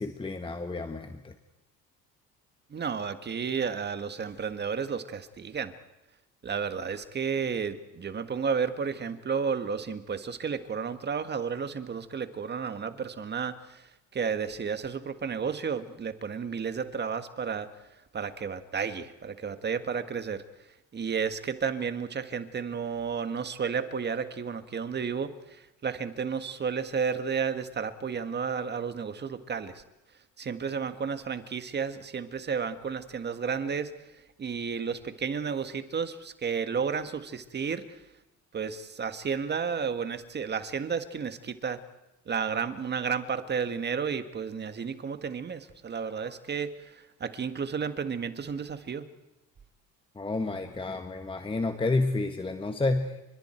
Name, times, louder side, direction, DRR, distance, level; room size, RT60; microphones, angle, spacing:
voice 1, 0.0-1.3 50.1-53.1, left 3 dB, 15° left, 6 dB, 1.6 m, -30 dB
voice 2, 2.7-5.7 6.4-17.7 18.1-20.4 20.9-29.8 30.4-38.0 38.5-41.8 42.3-49.1, right 6 dB, 30° right, 10 dB, 1.7 m, -32 dB
30.0 x 26.0 x 4.6 m, 0.96 s
cardioid pair, 105°, 32 cm